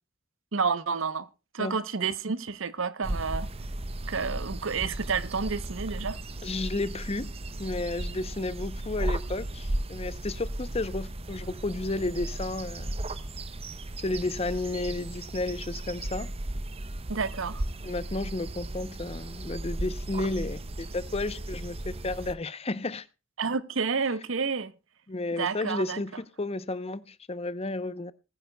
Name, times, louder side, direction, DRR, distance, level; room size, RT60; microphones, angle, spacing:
voice 1, 0.5-1.3 1.5-3.5 4.1-6.2 17.1-17.6 23.4-24.7 25.3-26.0, right 5 dB, 75° right, 0.8 m, -30 dB
sound 1, 3.0-22.3, right 1 dB, 30° right, 0.7 m, -35 dB
voice 2, 6.4-7.3 7.6-13.0 14.0-16.3 17.8-23.1 25.1-28.1, left 2 dB, 30° left, 0.7 m, -32 dB
20.0 x 9.8 x 2.2 m
head